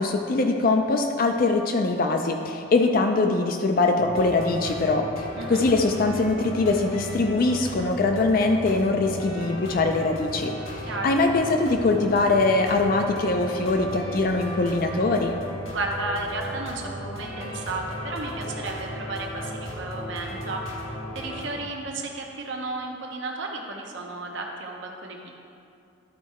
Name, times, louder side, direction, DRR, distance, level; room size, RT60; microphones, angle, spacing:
voice 1, 0.0-15.4, left 3 dB, 45° left, 4 dB, 0.4 m, -22 dB
sound 1, 4.0-21.5, equal, 85° left, 1.5 m, -36 dB
voice 2, 10.9-11.2 15.7-25.3, right 2 dB, 65° right, 1 dB, 0.7 m, -33 dB
11.5 x 4.6 x 4.2 m, 2.6 s
head